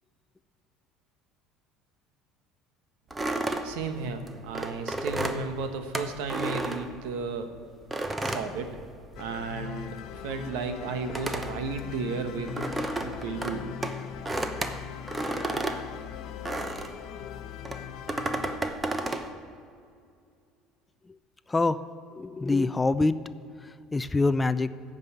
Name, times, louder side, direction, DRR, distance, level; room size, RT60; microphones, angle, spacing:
sound 1, 3.1-7.4 7.9-9.4 9.6-17.0 17.6-19.3, right 2 dB, 15° right, 0.8 m, -32 dB
voice 1, 3.6-7.5 8.2-8.8 9.2-10.0 10.2-12.6 13.0-13.7, right 4 dB, 85° right, 8 dB, 1.1 m, -34 dB
sound 2, 9.2-18.6, left 10 dB, 65° left, 0.6 m, -40 dB
voice 2, 21.5-21.8 22.2-23.2 23.9-24.7, left 3 dB, 15° left, 14 dB, 0.4 m, -24 dB
14.5 x 5.4 x 8.2 m, 2.4 s
supercardioid pair, 115°, 0 cm